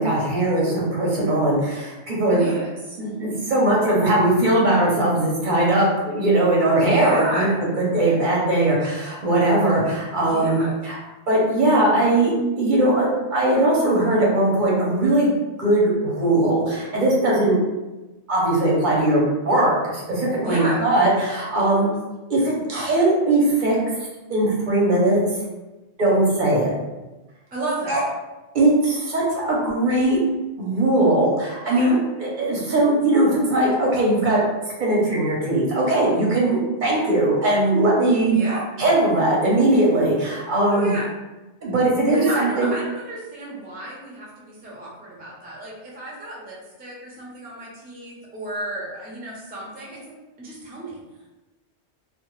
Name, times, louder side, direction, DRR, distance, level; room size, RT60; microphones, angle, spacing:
voice 1, 0.0-2.5 3.0-7.5 7.8-11.0 11.3-15.3 15.6-17.6 18.3-21.9 22.3-23.8 24.3-25.2 26.0-26.7 27.9-28.0 28.5-30.2 30.6-34.4 34.8-38.4 38.8-40.9 41.6-42.7, right 1 dB, 55° right, -4 dB, 0.6 m, -20 dB
voice 2, 2.3-3.1 6.9-7.6 10.2-10.7 20.4-20.8 27.5-28.0 31.7-32.0 38.3-38.7 40.7-41.1 42.1-51.0, right 1 dB, 15° right, -5 dB, 0.3 m, -32 dB
2.1 x 2.1 x 2.9 m, 1.1 s
omnidirectional pair, 1.2 m